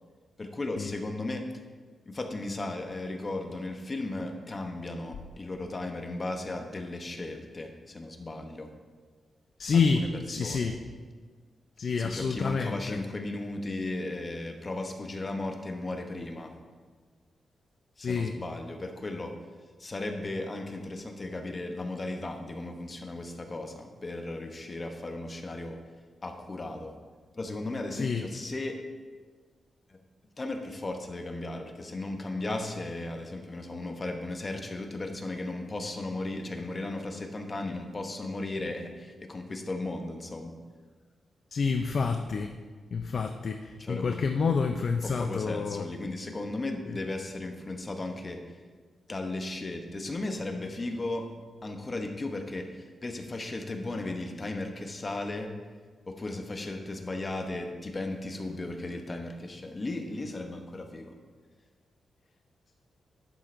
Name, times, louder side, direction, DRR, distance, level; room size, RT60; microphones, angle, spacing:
voice 1, 0.4-1.5 2.1-8.7 9.7-10.7 12.0-16.6 18.0-19.4 19.8-25.8 26.2-26.9 27.3-28.8 29.9-30.0 30.4-40.5 43.8-44.5 45.0-48.4 49.1-51.3 51.6-55.6 56.1-61.2, left 2 dB, 25° left, 5 dB, 0.7 m, -36 dB
voice 2, 9.6-10.8 11.8-13.0 18.0-18.3 27.9-28.3 41.5-42.5 42.9-45.9 46.9-47.0, left 5 dB, 50° left, 6 dB, 0.4 m, -28 dB
11.0 x 7.5 x 2.5 m, 1.5 s
wide cardioid pair, 150°, 0 cm